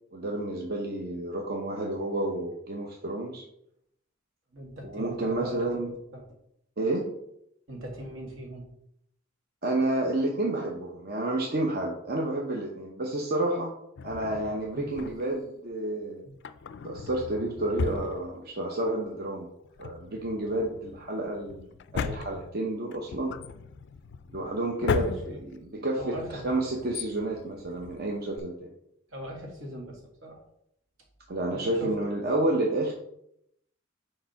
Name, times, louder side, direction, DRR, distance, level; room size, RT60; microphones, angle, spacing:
voice 1, 0.1-3.4 4.8-5.9 6.8-7.1 9.6-13.7 14.0-16.2 16.8-19.5 19.8-23.3 24.3-25.1 25.4-26.2 26.4-28.7 31.3-32.9, right 2 dB, 50° right, 0 dB, 0.8 m, -30 dB
voice 2, 4.5-6.2 7.7-8.6 14.7-14.9 16.2-16.3 24.8-25.4 26.0-26.8 29.1-30.4 31.5-31.9, right 1 dB, 75° right, 0 dB, 1.9 m, -40 dB
Drawer open or close, 14.0-15.5 16.3-18.8 19.1-19.2 19.6-28.4, left 5 dB, 60° left, 0.4 m, -37 dB
4.9 x 4.3 x 5.7 m, 0.76 s
head